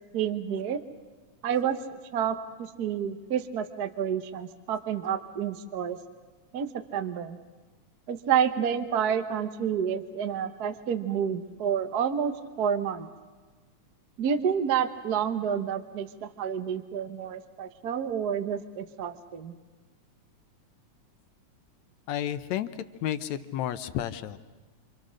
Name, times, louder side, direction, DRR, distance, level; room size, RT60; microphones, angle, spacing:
voice 1, 0.1-0.8 1.4-1.8 2.1-6.0 6.5-7.4 8.1-13.1 14.2-19.5, right 8 dB, 55° right, 9 dB, 1.1 m, -29 dB
voice 2, 22.1-22.7 23.0-24.4, left 11 dB, 70° left, 11 dB, 2.1 m, -31 dB
27.5 x 27.0 x 6.5 m, 1.3 s
omnidirectional pair, 3.5 m